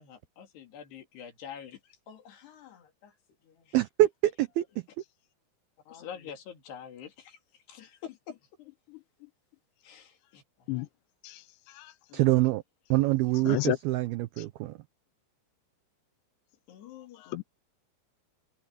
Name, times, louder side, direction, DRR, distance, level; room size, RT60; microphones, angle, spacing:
voice 1, 0.0-3.1 3.4-3.8 5.9-7.4 7.7-9.3 9.8-10.7 12.1-12.2 16.7-17.4, left 8 dB, 65° left, 4.7 m, -47 dB
voice 2, 3.7-4.7 12.1-12.6 12.9-14.8, right 16 dB, 85° right, 2.1 m, -25 dB
voice 3, 11.2-11.9 13.5-13.8 14.4-14.5 17.2-17.4, left 17 dB, 80° left, 3.1 m, -32 dB
omnidirectional pair, 5.3 m